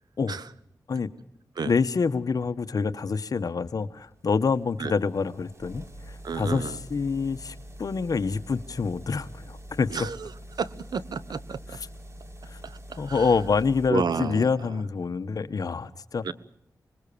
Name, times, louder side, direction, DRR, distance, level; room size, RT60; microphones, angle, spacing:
voice 1, 1.6-9.9 12.5-12.6 13.0-16.2, left 5 dB, 60° left, 10 dB, 1.3 m, -27 dB
sound 1, 3.7-13.9, equal, 40° right, 3.6 m, -45 dB
voice 2, 6.2-6.8 9.9-11.8 12.6-13.3 13.9-14.5 16.2-16.3, right 5 dB, 75° right, 16 dB, 1.1 m, -31 dB
25.5 x 21.0 x 7.0 m, 0.71 s
wide cardioid pair, 85°, 7 cm